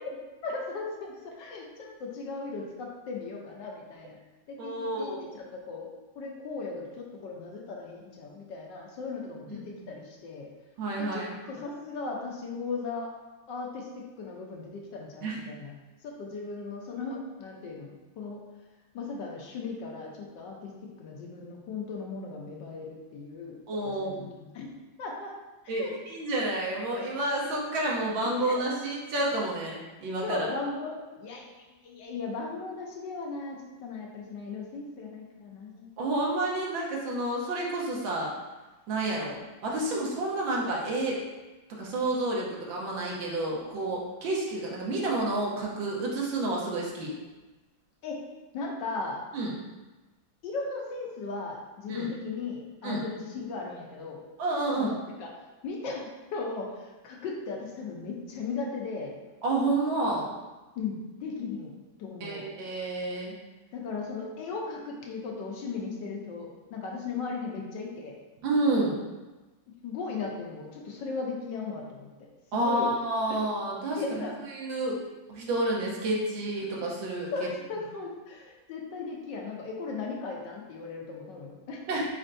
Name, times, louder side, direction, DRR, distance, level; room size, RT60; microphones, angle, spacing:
voice 1, 0.0-4.2 4.5-5.9 6.2-10.5 11.0-13.1 13.5-15.7 16.0-18.4 18.9-24.7 25.0-25.3 25.6-25.9 28.4-28.5 30.2-35.9 48.0-48.2 48.5-49.2 50.4-54.2 54.8-54.9 55.2-55.3 55.6-59.1 60.8-61.7 62.0-62.5 63.7-68.2 69.8-72.1 72.5-72.9 74.0-74.3 77.3-81.8, left 4 dB, 70° left, 0 dB, 1.3 m, -37 dB
voice 2, 4.6-5.2 9.5-9.9 10.8-11.4 15.2-15.4 23.7-24.3 25.7-30.5 36.0-38.3 38.9-39.4 39.6-41.2 41.7-47.1 49.3-49.5 51.9-52.1 52.8-53.0 54.4-54.9 59.4-60.3 62.2-63.3 68.4-69.0 72.5-74.2 74.5-75.0 75.3-77.3 81.9-82.1, right 2 dB, 80° right, -3 dB, 1.6 m, -30 dB
4.3 x 4.3 x 2.6 m, 1.1 s
omnidirectional pair, 2.1 m